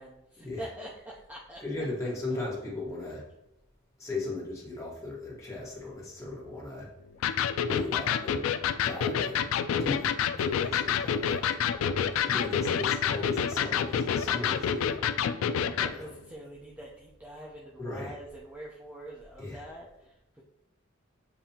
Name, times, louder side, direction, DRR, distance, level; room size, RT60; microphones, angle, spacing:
voice 1, 0.0-1.6 7.1-7.7 10.6-10.8 15.5-20.2, right 1 dB, 10° right, -4 dB, 0.4 m, -45 dB
voice 2, 1.6-3.2 4.0-6.9 7.5-8.5 8.8-9.5 9.8-11.4 12.2-15.1 15.8-16.1 17.8-18.2 19.4-19.6, left 2 dB, 15° left, -5 dB, 1.4 m, -37 dB
Electric guitar, 7.2-16.0, left 8 dB, 80° left, 0.3 m, -28 dB
7.1 x 2.6 x 2.8 m, 0.86 s
head